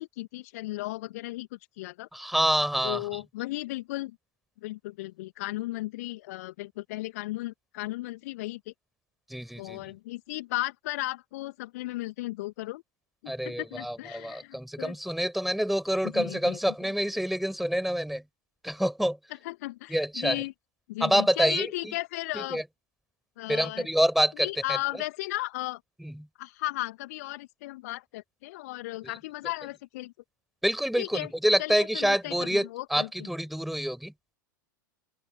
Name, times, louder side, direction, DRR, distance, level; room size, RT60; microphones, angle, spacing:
voice 1, 0.0-1.5 1.8-2.1 2.8-4.2 4.6-8.7 9.6-12.8 13.4-14.9 16.2-16.6 19.4-20.5 20.9-22.6 23.4-23.9 24.4-25.8 26.4-30.1 31.0-31.3 31.6-33.1, left 19 dB, 50° left, 2.1 m, -35 dB
voice 2, 2.1-3.2 9.3-9.9 13.3-18.2 18.6-19.2 19.9-20.4 21.0-21.9 22.3-22.6 23.5-25.0 26.0-26.3 29.0-29.1 30.6-34.1, equal, ahead, 5.3 m, -27 dB
open air
figure-of-eight pair, 90°, 10 cm